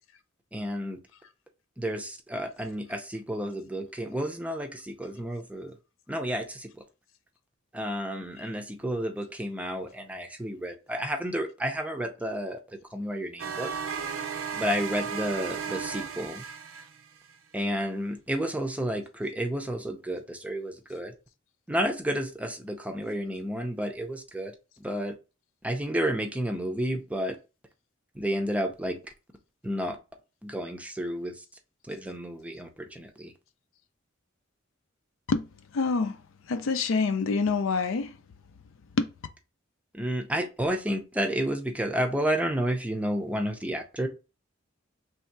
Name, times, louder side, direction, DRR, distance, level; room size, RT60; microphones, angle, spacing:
voice 1, 0.5-1.0 1.8-5.8 6.1-6.7 7.7-12.6 12.9-13.7 14.5-16.4 17.5-21.1 21.7-24.5 24.8-25.1 25.6-27.4 28.1-29.0 29.6-30.0 30.4-31.4 31.9-33.3 39.9-44.1, equal, 5° right, 0.5 m, -31 dB
sound 1, 13.4-17.3, right 6 dB, 70° right, 0.5 m, -35 dB
voice 2, 35.7-36.2 36.5-38.1 39.0-39.1, left 4 dB, 70° left, 0.5 m, -26 dB
3.2 x 2.7 x 4.5 m
head